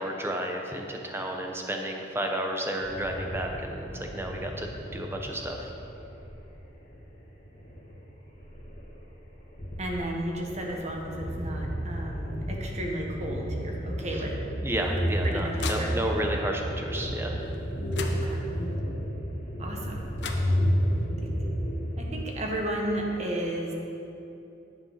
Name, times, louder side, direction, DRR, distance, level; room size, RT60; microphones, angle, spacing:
voice 1, 0.0-4.7 4.9-5.7 14.6-17.5, right 1 dB, 15° right, 2 dB, 1.0 m, -32 dB
sound 1, 2.8-22.1, equal, 40° left, 2.5 m, -32 dB
voice 2, 9.8-14.3 15.2-15.9 18.1-18.4 19.6-20.0 22.0-23.7, right 1 dB, 35° right, -1 dB, 1.5 m, -33 dB
sound 2, 14.8-16.4 17.5-17.6 17.9-18.8 19.9-20.0 20.2-21.1, left 5 dB, 65° left, 0.9 m, -40 dB
10.5 x 8.1 x 5.8 m, 2.9 s
head